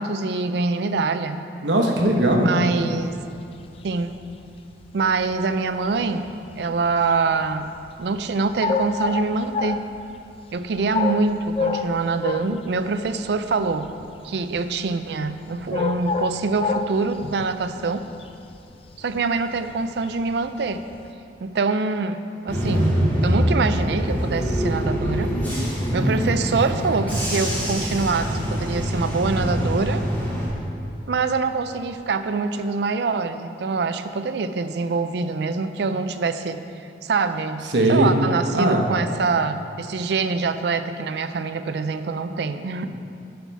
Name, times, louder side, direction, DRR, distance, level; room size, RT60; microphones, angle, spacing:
voice 1, 0.0-1.5 2.4-3.1 3.8-4.2 4.9-6.3 6.6-7.7 8.0-9.8 10.5-13.9 14.2-18.1 19.0-20.8 21.4-22.2 22.4-25.3 25.9-30.0 31.1-36.6 37.0-42.9, right 4 dB, 65° right, 10 dB, 0.4 m, -24 dB
voice 2, 1.6-2.5 37.7-38.1 38.5-38.9, right 1 dB, 90° right, 1 dB, 1.1 m, -19 dB
sound 1, 2.7-21.1, left 4 dB, 30° left, 0.3 m, -31 dB
Bus / Engine, 22.5-30.5, equal, 10° left, 2.1 m, -24 dB
9.4 x 5.7 x 4.6 m, 2.6 s
head